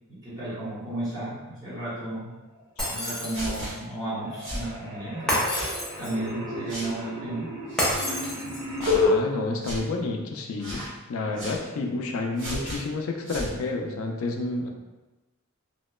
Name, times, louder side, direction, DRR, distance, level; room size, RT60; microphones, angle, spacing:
voice 1, 0.1-2.3 2.9-5.7 6.0-7.5, right 1 dB, 20° right, -12 dB, 1.0 m, -33 dB
Shatter, 2.8-3.7 5.3-6.3 7.8-8.8, equal, 5° left, 0.4 m, -28 dB
sound 1, 3.2-3.7 4.0-9.1, left 2 dB, 80° right, 0.7 m, -31 dB
sound 2, 3.3-3.7 4.4-4.7 5.4-5.7 6.7-6.9 7.7-8.0 8.8-9.0 9.6-9.8 10.6-10.9 11.3-11.6 12.4-12.8 13.2-13.5, equal, 55° right, 1.3 m, -35 dB
voice 2, 8.8-10.8 11.1-14.7, left 3 dB, 75° left, 2 dB, 0.4 m, -30 dB
2.8 x 2.1 x 2.2 m, 1.1 s
head